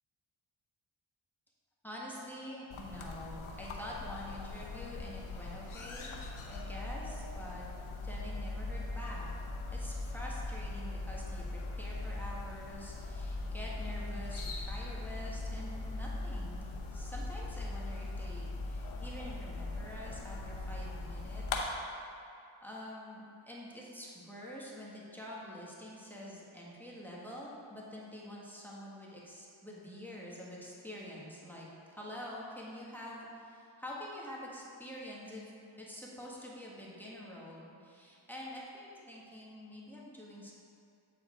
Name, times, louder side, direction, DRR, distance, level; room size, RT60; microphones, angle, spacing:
voice 1, 1.8-7.6 8.0-9.3 9.7-22.2 22.6-35.4 35.8-40.5, left 1 dB, 5° left, -5 dB, 1.5 m, -46 dB
sound 1, 2.7-21.6, left 2 dB, 70° left, 0.9 m, -40 dB
8.7 x 4.4 x 3.8 m, 2.6 s
cardioid pair, 60°, 50 cm